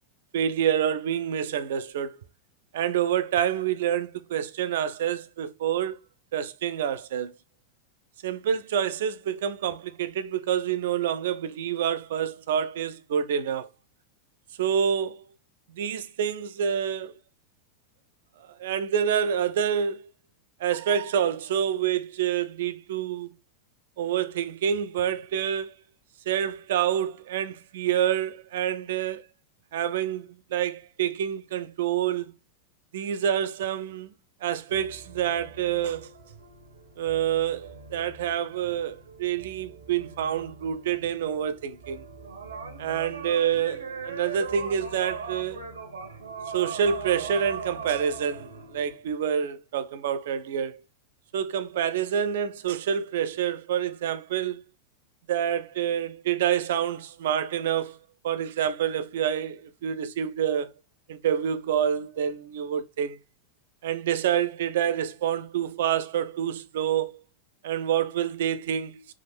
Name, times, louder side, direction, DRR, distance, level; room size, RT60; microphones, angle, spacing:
voice 1, 0.3-2.2 2.7-6.0 6.3-7.3 8.2-13.7 14.6-15.2 15.7-17.1 18.6-20.1 20.6-23.3 24.0-25.7 26.3-29.2 29.7-32.3 32.9-34.1 34.4-36.1 37.0-42.0 42.8-45.6 46.5-50.8 51.3-54.6 55.3-58.0 58.2-60.7 61.1-63.2 63.8-67.2 67.6-69.1, right 9 dB, 55° right, 0.4 m, -27 dB
sound 1, 34.7-49.0, right 5 dB, 75° right, 0.8 m, -40 dB
3.5 x 2.5 x 4.2 m
figure-of-eight pair, 90°, 0 cm